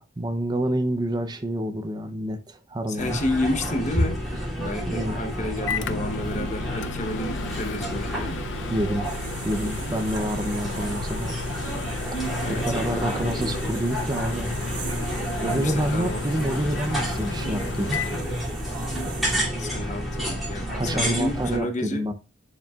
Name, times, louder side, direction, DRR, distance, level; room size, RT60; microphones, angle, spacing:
voice 1, 0.0-3.2 4.9-5.2 8.7-9.1 9.4-11.4 12.5-14.5 15.4-18.0 20.7-22.1, right 1 dB, 20° right, 0.6 m, -28 dB
voice 2, 2.9-4.2 4.6-8.4 12.4-13.7 15.4-16.2 19.6-22.0, left 1 dB, 40° left, 0.9 m, -31 dB
sound 1, 3.0-21.6, equal, ahead, 2.6 m, -30 dB
Microwave oven, 5.0-19.0, left 6 dB, 70° left, 0.4 m, -35 dB
sound 2, 9.0-19.4, right 5 dB, 60° right, 2.0 m, -41 dB
10.5 x 5.2 x 2.4 m
head